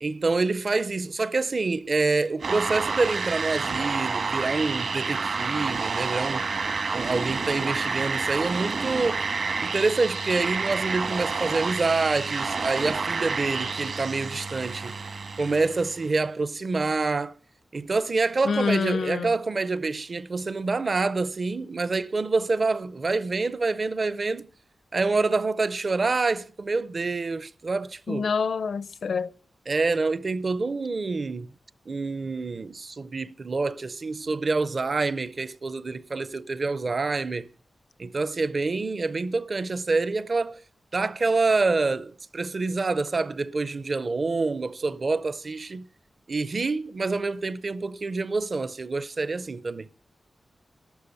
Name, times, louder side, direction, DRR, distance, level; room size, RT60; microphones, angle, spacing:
voice 1, 0.0-6.5 6.9-9.3 9.6-14.9 15.4-17.3 17.7-24.5 24.9-28.3 29.7-31.5 31.9-37.5 38.0-40.6 40.9-45.9 46.3-49.9, right 3 dB, 35° right, 0.5 m, -27 dB
sound 1, 2.4-16.1, right 4 dB, 60° right, 1.5 m, -29 dB
voice 2, 18.4-19.3 28.1-29.3, left 5 dB, 65° left, 0.6 m, -26 dB
13.0 x 12.0 x 5.4 m
wide cardioid pair, 170°, 0 cm